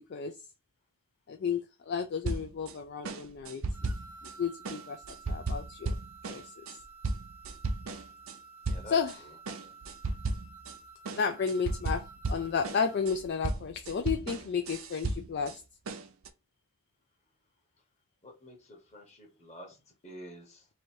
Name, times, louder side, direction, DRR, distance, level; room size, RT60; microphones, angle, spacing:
voice 1, 1.3-3.9 4.4-5.9 6.3-6.8 8.9-9.2 11.1-15.6, left 6 dB, 50° left, 0.3 m, -33 dB
sound 1, 2.2-2.7 3.0-4.3 4.6-8.4 8.6-9.2 9.5-10.8 11.1-15.6 15.9-16.3, right 2 dB, 65° right, 0.6 m, -35 dB
sound 2, 3.7-13.3, right 4 dB, 10° right, 0.8 m, -52 dB
voice 2, 5.2-5.5 8.7-9.7 18.2-20.7, equal, 30° left, 1.2 m, -50 dB
3.2 x 2.6 x 4.4 m
head